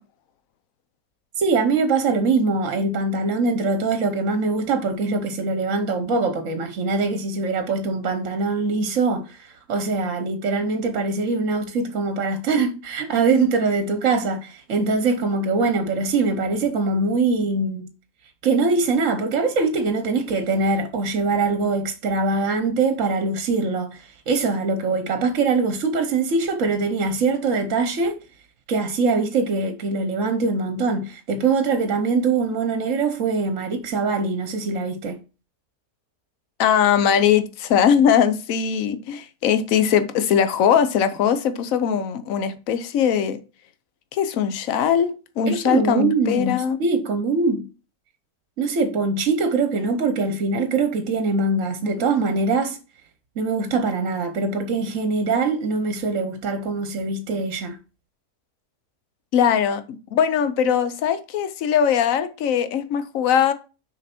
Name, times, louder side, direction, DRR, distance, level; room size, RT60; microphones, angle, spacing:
voice 1, 1.4-17.9 18.4-28.2 28.7-35.2 45.5-47.7 48.6-52.8 53.4-57.8, right 3 dB, 60° right, 1.2 m, -23 dB
voice 2, 36.6-43.4 44.1-46.8 59.3-63.5, left 8 dB, 65° left, 1.1 m, -20 dB
6.5 x 5.1 x 4.3 m
omnidirectional pair, 1.6 m